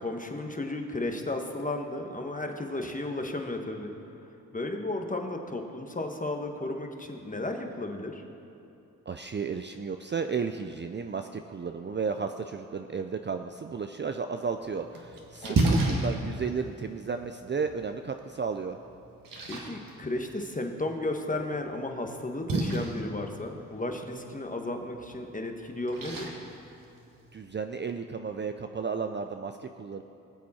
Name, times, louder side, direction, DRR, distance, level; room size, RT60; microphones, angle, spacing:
voice 1, 0.0-3.9 4.5-8.2 15.4-15.6 15.9-16.0 19.5-26.4, left 2 dB, 20° left, 4 dB, 1.4 m, -34 dB
voice 2, 9.1-18.8 27.3-30.0, right 5 dB, 30° right, 7 dB, 0.5 m, -33 dB
Splash splatter, 14.5-27.5, right 2 dB, 65° right, 1.9 m, -34 dB
19.0 x 7.4 x 4.3 m, 2.7 s
cardioid pair, 60°, 36 cm